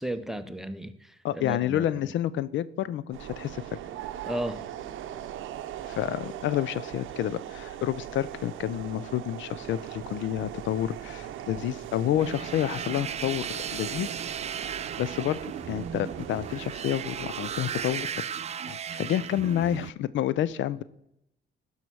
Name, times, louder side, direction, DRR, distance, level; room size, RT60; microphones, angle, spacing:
voice 1, 0.0-2.0 4.2-4.6, right 1 dB, ahead, 12 dB, 0.7 m, -34 dB
voice 2, 1.2-3.8 5.9-14.2 15.0-15.4 15.7-18.2 18.7-20.8, left 11 dB, 75° left, 18 dB, 0.5 m, -29 dB
sound 1, 3.1-18.1, right 11 dB, 80° right, 0.6 m, -40 dB
sound 2, 12.2-19.9, right 8 dB, 35° right, 0.4 m, -36 dB
11.5 x 5.6 x 4.6 m, 0.81 s
cardioid pair, 90°, 20 cm